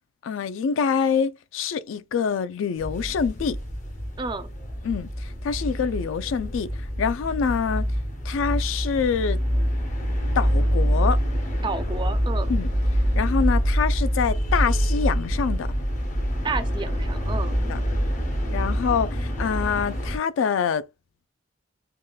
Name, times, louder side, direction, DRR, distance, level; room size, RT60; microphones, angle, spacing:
voice 1, 0.2-3.6 4.8-6.7 7.0-7.9 8.2-9.4 10.4-11.2 12.5-12.7 13.2-15.7 17.7-17.8 18.5-20.9, left 6 dB, 80° left, 0.3 m, -25 dB
sound 1, 2.8-20.2, equal, 40° left, 0.7 m, -25 dB
voice 2, 4.2-4.5 11.6-12.5 16.4-17.6, right 3 dB, 25° right, 0.3 m, -31 dB
3.6 x 2.2 x 2.3 m
head